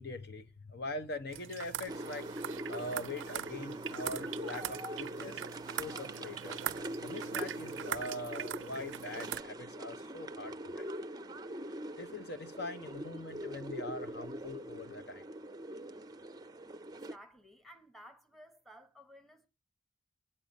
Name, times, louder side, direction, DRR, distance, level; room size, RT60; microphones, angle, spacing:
voice 1, 0.0-2.3 2.7-5.4 5.7-6.6 7.0-10.9 12.0-15.2, left 2 dB, 55° left, 0.9 m, -42 dB
sound 1, 1.3-9.4, right 10 dB, 80° right, 0.5 m, -42 dB
sound 2, 1.9-17.2, right 1 dB, 20° right, 0.5 m, -43 dB
voice 2, 16.9-19.5, equal, ahead, 1.1 m, -56 dB
8.8 x 8.8 x 5.2 m
head